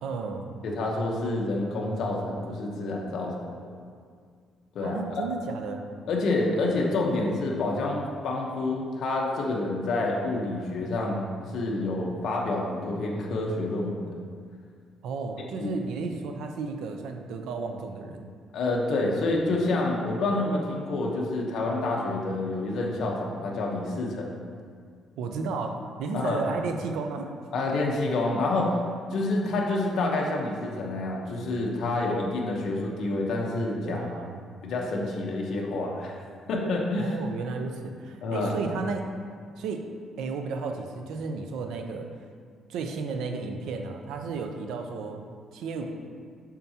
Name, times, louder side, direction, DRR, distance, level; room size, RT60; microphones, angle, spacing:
voice 1, 0.0-0.5 4.8-5.8 15.0-18.3 25.2-27.3 33.8-34.4 37.0-39.1 39.6-39.8 40.2-42.1 42.7-45.2 45.5-45.9, right 4 dB, 80° right, 4 dB, 0.6 m, -33 dB
voice 2, 0.6-3.7 4.7-5.2 6.1-14.2 15.6-15.7 18.5-24.4 26.1-26.4 27.5-28.8 29.1-34.1 34.6-36.2 36.5-37.1 38.2-38.5, left 2 dB, 60° left, -1 dB, 0.9 m, -28 dB
7.4 x 5.8 x 2.8 m, 2.1 s
cardioid pair, 155°, 0 cm